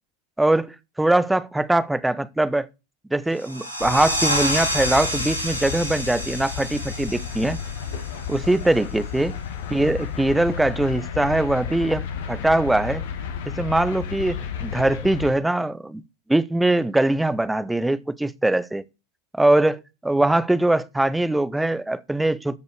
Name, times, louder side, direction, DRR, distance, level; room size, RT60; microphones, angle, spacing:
voice 1, 0.4-2.7 3.1-7.6 8.3-9.4 9.7-13.0 13.5-16.0 16.3-18.8 19.3-22.6, right 1 dB, 5° right, 0.7 m, -22 dB
sound 1, 3.3-8.7, equal, 90° right, 2.9 m, -29 dB
sound 2, 3.8-15.3, left 8 dB, 55° left, 1.8 m, -32 dB
13.5 x 5.4 x 6.4 m
figure-of-eight pair, 90°, 0 cm